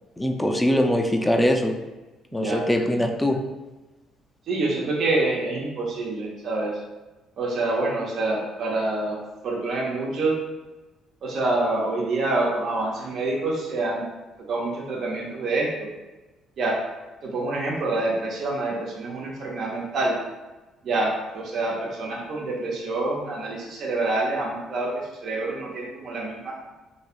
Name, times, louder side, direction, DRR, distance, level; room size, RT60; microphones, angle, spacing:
voice 1, 0.2-1.7 2.3-3.4, left 1 dB, 5° left, 4 dB, 0.3 m, -22 dB
voice 2, 2.3-2.6 2.9-3.1 4.5-6.8 7.4-10.3 11.2-14.1 14.5-15.9 16.6-16.8 17.2-20.2 20.8-26.5, right 2 dB, 55° right, -3 dB, 0.7 m, -27 dB
3.1 x 2.6 x 2.4 m, 1.1 s
cardioid pair, 115°, 0 cm